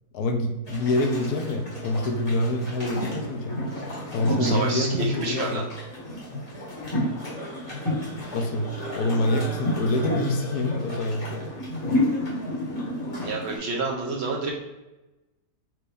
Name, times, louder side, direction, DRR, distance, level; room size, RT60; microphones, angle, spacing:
voice 1, 0.1-3.6 4.1-5.6 8.3-11.5, left 1 dB, 75° left, 4 dB, 1.1 m, -26 dB
sound 1, 0.7-13.6, left 1 dB, 25° left, 1.5 m, -31 dB
voice 2, 4.3-5.6 13.2-14.5, right 3 dB, 70° right, 0 dB, 0.6 m, -28 dB
4.5 x 2.6 x 3.4 m, 1.0 s
omnidirectional pair, 1.7 m